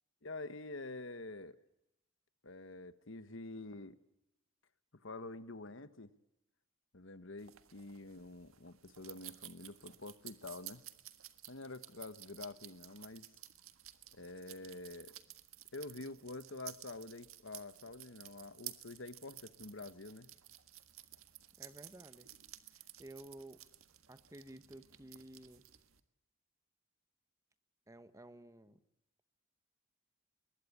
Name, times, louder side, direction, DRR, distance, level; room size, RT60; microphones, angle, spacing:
voice 1, 0.2-1.6 2.4-4.0 5.0-6.1 6.9-10.8 11.5-13.3 14.1-15.1 15.7-20.3, left 2 dB, 65° left, 12 dB, 1.3 m, -47 dB
sound 1, 7.4-26.0, right 13 dB, 80° right, 1.6 m, -54 dB
voice 2, 21.6-22.3 22.7-23.6 24.1-25.6 27.9-28.8, right 1 dB, 15° right, 11 dB, 1.2 m, -53 dB
23.0 x 21.0 x 8.5 m, 0.86 s
head